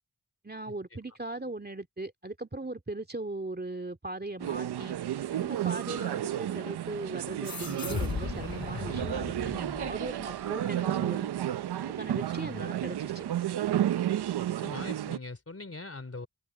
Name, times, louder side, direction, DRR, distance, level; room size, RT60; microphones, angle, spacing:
voice 1, 0.4-5.0 5.3-11.3 11.8-13.3, right 2 dB, 25° right, 2.3 m, -39 dB
sound 1, 4.4-15.2, right 11 dB, 85° right, 0.6 m, -32 dB
sound 2, 5.7-6.4 7.4-8.1 10.2-10.9 11.3-11.4, right 5 dB, 60° right, 2.9 m, -48 dB
sound 3, 7.4-10.5, left 5 dB, 65° left, 7.1 m, -37 dB
voice 2, 12.1-12.7 14.6-16.3, left 3 dB, 35° left, 3.4 m, -42 dB
cardioid pair, 45°, 39 cm